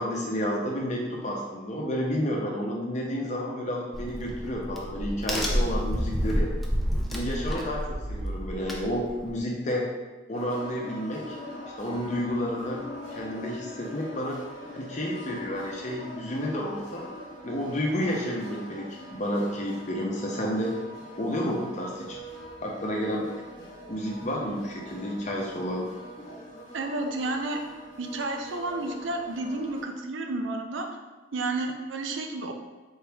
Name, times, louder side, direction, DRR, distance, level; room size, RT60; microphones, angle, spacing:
voice 1, 0.0-6.5 7.1-9.8 10.3-11.4 11.8-12.8 13.1-14.4 14.7-17.1 17.4-20.8 21.2-22.2 22.6-23.3 23.9-25.9, equal, 40° left, -1 dB, 0.8 m, -30 dB
Crack, 3.9-9.4, equal, ahead, 0.4 m, -29 dB
sound 1, 10.3-29.8, equal, 85° left, 1.1 m, -43 dB
voice 2, 26.7-27.6 28.0-30.9 31.3-32.5, right 2 dB, 75° right, 4 dB, 0.5 m, -31 dB
4.6 x 2.9 x 3.4 m, 1.3 s
head